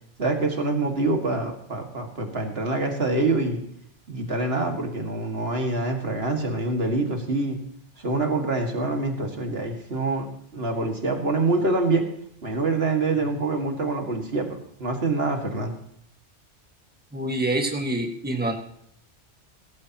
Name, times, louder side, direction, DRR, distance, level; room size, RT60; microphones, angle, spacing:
voice 1, 0.2-3.6 4.1-7.6 8.0-10.3 10.5-12.0 12.4-15.7, right 3 dB, 55° right, 3 dB, 2.3 m, -25 dB
voice 2, 17.1-18.6, right 1 dB, 10° right, 2 dB, 1.8 m, -26 dB
17.5 x 15.0 x 3.0 m, 0.69 s
omnidirectional pair, 1.2 m